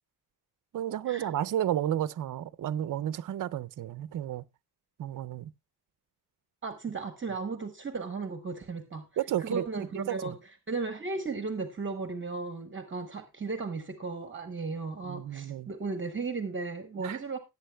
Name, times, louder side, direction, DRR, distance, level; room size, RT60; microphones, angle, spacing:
voice 1, 0.7-4.4 5.0-5.5 9.2-10.4 15.0-15.7 17.0-17.2, right 11 dB, 55° right, 0.5 m, -32 dB
voice 2, 6.6-9.0 9.4-10.3 10.7-17.4, right 4 dB, 30° right, 0.9 m, -35 dB
18.0 x 8.3 x 2.2 m
wide cardioid pair, 155°, 40 cm